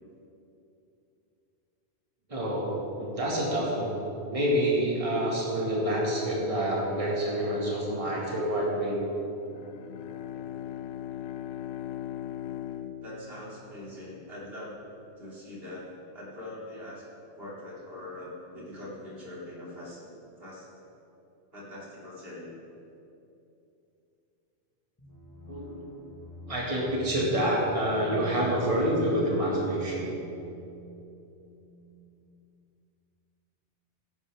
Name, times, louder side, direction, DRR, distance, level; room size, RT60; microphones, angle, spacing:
voice 1, 2.3-4.0 4.2-9.0 25.5-26.0 26.5-30.1, right 1 dB, 30° right, -5 dB, 2.2 m, -27 dB
Bowed string instrument, 9.4-14.2, left 11 dB, 75° left, 0.8 m, -39 dB
voice 2, 13.0-14.8 15.2-17.0 17.4-20.8 21.5-22.5, left 1 dB, 55° right, -7 dB, 3.4 m, -42 dB
sound 1, 25.0-32.7, right 1 dB, 15° left, 1.8 m, -48 dB
17.0 x 10.5 x 3.6 m, 2.8 s
omnidirectional pair, 1.2 m